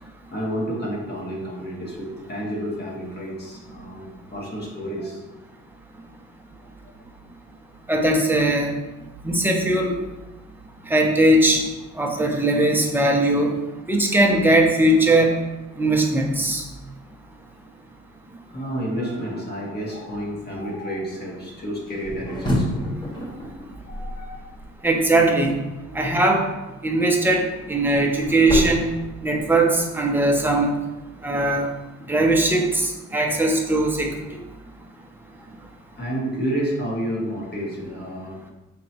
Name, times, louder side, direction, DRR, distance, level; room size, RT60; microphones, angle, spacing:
voice 1, 0.0-5.2 6.6-6.9 18.5-22.9 23.8-24.5 25.8-26.3 29.2-29.3 36.0-38.4, right 1 dB, 35° left, -3 dB, 1.5 m, -30 dB
voice 2, 7.9-8.7 9.2-9.9 10.9-11.6 12.0-13.5 13.9-15.3 15.8-16.6 24.8-25.6 26.0-26.4 26.8-28.9 29.2-30.7 31.2-31.7 32.1-34.1, right 1 dB, 5° right, 1 dB, 0.7 m, -19 dB
sound 1, 21.9-25.0 27.2-29.8, equal, 15° left, 1.1 m, -29 dB
5.0 x 3.2 x 2.9 m, 1.0 s
cardioid pair, 90°, 30 cm